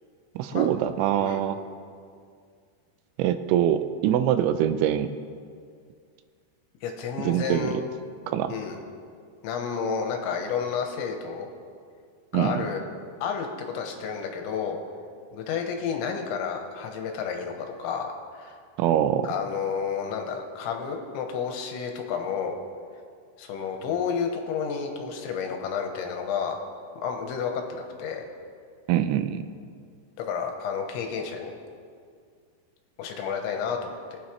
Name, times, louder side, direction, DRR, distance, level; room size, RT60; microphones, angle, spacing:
voice 1, 0.4-1.6 3.2-5.1 7.3-7.7 8.3-8.5 12.3-12.7 18.8-19.3 28.9-29.4, right 11 dB, 85° right, 10 dB, 3.0 m, -24 dB
voice 2, 6.8-7.8 8.5-8.8 9.4-11.5 12.3-12.8 13.2-14.8 15.3-18.6 19.2-22.6 23.4-26.6 27.0-28.2 30.2-31.6 33.0-34.2, left 6 dB, 80° left, 3 dB, 3.3 m, -31 dB
23.5 x 9.2 x 3.2 m, 2.2 s
omnidirectional pair, 5.3 m